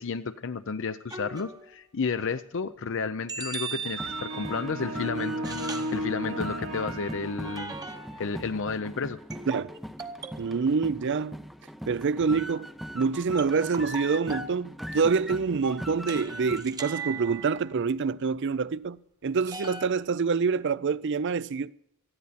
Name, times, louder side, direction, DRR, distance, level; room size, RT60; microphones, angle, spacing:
voice 1, 0.0-7.8 8.1-9.2, left 5 dB, 60° left, 0.6 m, -32 dB
sound 1, 1.1-1.8 3.3-4.6 5.4-6.0 7.4-8.3 9.3-10.6 13.4-14.6 16.1-17.8 19.5-19.9, right 4 dB, 15° right, 0.9 m, -38 dB
sound 2, 3.7-16.6, equal, ahead, 0.6 m, -40 dB
sound 3, 4.0-7.9, equal, 75° right, 2.5 m, -35 dB
voice 2, 10.4-11.4 11.9-12.7 12.9-19.0 19.2-21.7, right 5 dB, 55° right, 0.5 m, -26 dB
19.0 x 14.0 x 4.2 m
head